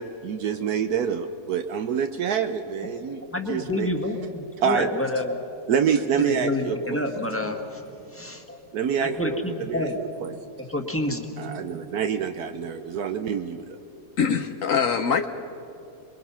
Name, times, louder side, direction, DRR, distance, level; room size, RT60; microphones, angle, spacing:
voice 1, 0.0-3.2 3.5-3.9 4.6-4.9 5.7-7.0 8.7-9.4 9.7-9.9 10.2-10.3 11.4-13.8, right 7 dB, 75° right, 7 dB, 1.3 m, -26 dB
voice 2, 3.3-5.5 6.1-8.6 9.0-10.0 10.6-11.2, left 1 dB, 10° left, 4 dB, 1.6 m, -29 dB
voice 3, 14.2-15.3, left 6 dB, 60° left, 8 dB, 1.1 m, -23 dB
27.5 x 22.0 x 5.7 m, 3.0 s
omnidirectional pair, 1.7 m